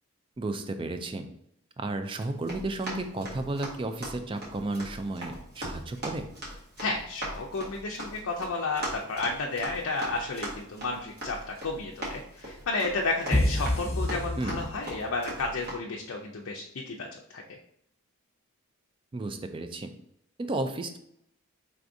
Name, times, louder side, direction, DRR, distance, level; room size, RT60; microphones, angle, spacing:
voice 1, 0.4-1.3 1.8-6.3 14.4-14.6 19.1-19.9 20.4-21.0, right 2 dB, 25° right, 8 dB, 0.3 m, -33 dB
Run, 2.1-15.8, right 1 dB, 45° right, 1.5 m, -41 dB
voice 2, 6.8-17.4, left 3 dB, 65° left, 0 dB, 0.5 m, -32 dB
sound 1, 13.3-15.1, left 1 dB, 30° left, 1.0 m, -27 dB
4.7 x 3.4 x 2.6 m, 0.73 s
head